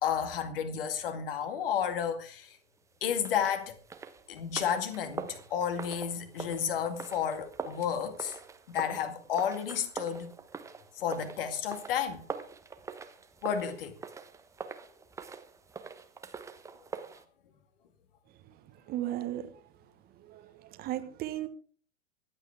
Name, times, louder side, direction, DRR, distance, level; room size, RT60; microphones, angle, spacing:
voice 1, 0.0-2.6 3.0-3.8 4.3-8.4 8.7-10.3 11.0-12.2 13.4-14.0, left 8 dB, 50° left, 2.2 m, -32 dB
sound 1, 3.2-17.2, right 5 dB, 10° right, 1.0 m, -44 dB
voice 2, 18.9-19.6 20.2-21.5, right 13 dB, 25° right, 1.4 m, -36 dB
25.0 x 8.7 x 3.5 m
figure-of-eight pair, 105°, 36 cm